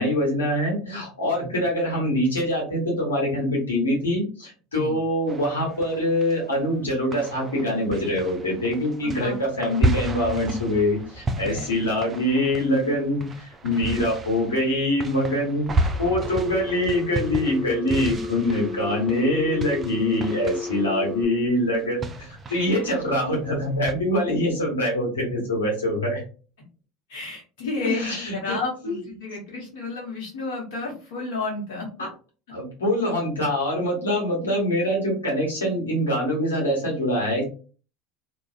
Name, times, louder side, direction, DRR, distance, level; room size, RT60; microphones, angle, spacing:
voice 1, 0.0-26.2 27.8-28.6 28.8-29.0 32.0-32.1 32.5-37.5, left 1 dB, 90° left, -3 dB, 1.1 m, -24 dB
sound 1, 5.3-6.7 7.1-23.9, right 1 dB, 30° right, 0.4 m, -32 dB
voice 2, 9.0-9.3 11.5-11.7 27.1-31.9, left 3 dB, 70° left, -3 dB, 1.0 m, -31 dB
Telephone, 16.3-21.3, left 3 dB, 20° left, 1.3 m, -33 dB
2.5 x 2.2 x 2.4 m, 0.37 s
hypercardioid pair, 80°, 0 cm